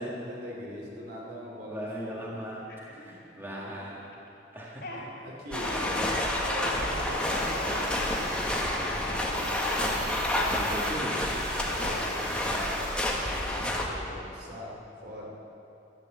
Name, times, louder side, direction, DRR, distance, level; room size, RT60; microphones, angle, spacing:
voice 1, 0.0-2.4 3.3-3.9 5.2-10.1 11.6-14.7 15.0-15.3, equal, 65° right, -3 dB, 3.1 m, -42 dB
voice 2, 1.7-2.6 2.9-4.1 4.5-5.1 9.8-10.1 10.5-11.3, equal, 15° right, -5 dB, 1.9 m, -38 dB
sound 1, 2.7-3.4 3.8-4.3 4.6-5.0 5.5-10.1 10.7-11.0 11.6-12.6, left 1 dB, 65° left, 3.6 m, -40 dB
sound 2, 5.5-13.8, left 1 dB, 5° left, 1.5 m, -29 dB
sound 3, 7.2-8.7 9.2-13.0, right 2 dB, 40° right, 3.9 m, -45 dB
13.5 x 9.9 x 7.2 m, 2.8 s
head